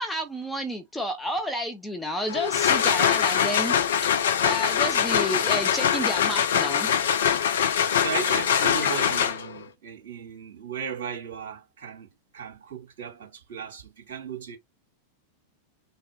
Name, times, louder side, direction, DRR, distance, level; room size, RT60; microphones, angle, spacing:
voice 1, 0.0-3.8 4.1-6.9, equal, 5° left, 0.8 m, -30 dB
sound 1, 2.3-9.6, left 8 dB, 60° left, 0.5 m, -23 dB
voice 2, 7.6-12.1 12.3-14.6, right 7 dB, 55° right, 2.5 m, -36 dB
4.1 x 2.1 x 2.8 m
figure-of-eight pair, 90°, 0 cm